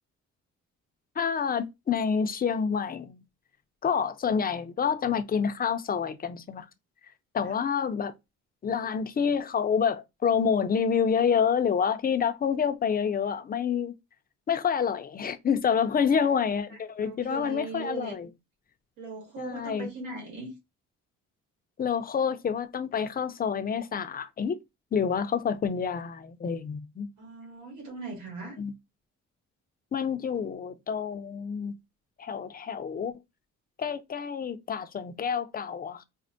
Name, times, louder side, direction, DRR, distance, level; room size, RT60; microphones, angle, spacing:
voice 1, 1.2-3.2 3.8-6.6 7.3-8.1 8.6-13.9 14.5-18.3 19.4-19.9 21.8-24.6 24.9-27.1 28.6-28.7 29.9-31.7 32.2-33.1 33.8-36.0, left 7 dB, 30° left, 0.5 m, -28 dB
voice 2, 16.7-18.2 19.0-20.5 27.2-28.6, right 3 dB, 85° right, 1.5 m, -40 dB
4.3 x 2.1 x 2.5 m
cardioid pair, 90°, 30 cm